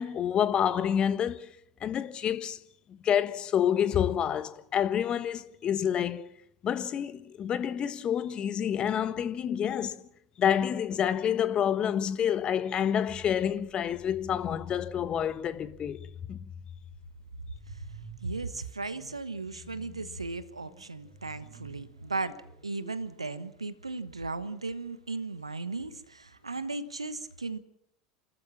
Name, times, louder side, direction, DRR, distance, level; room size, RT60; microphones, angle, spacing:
voice 1, 0.0-1.5 1.8-2.6 3.0-6.3 6.6-10.0 10.4-16.0 16.3-16.4, left 9 dB, 35° left, 1.2 m, -28 dB
sound 1, 13.1-23.4, left 3 dB, 15° right, 7.0 m, -49 dB
voice 2, 18.2-27.6, right 3 dB, 85° right, 1.1 m, -36 dB
30.0 x 14.0 x 7.4 m
figure-of-eight pair, 75°, 3 cm